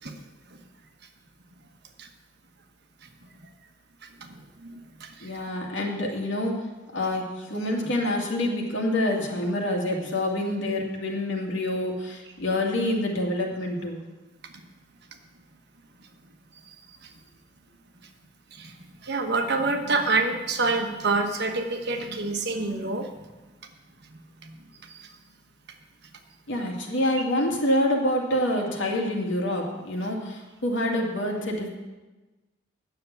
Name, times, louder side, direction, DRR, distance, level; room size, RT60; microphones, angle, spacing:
voice 1, 4.2-5.4 16.5-16.6 17.0-17.1 18.5-18.7 19.0-23.5 24.4-24.6 24.8-25.1, right 3 dB, 60° right, 4 dB, 1.3 m, -28 dB
voice 2, 5.2-6.7 6.9-14.0 26.5-31.7, left 1 dB, 85° left, 0 dB, 2.3 m, -27 dB
9.7 x 7.0 x 8.2 m, 1.2 s
head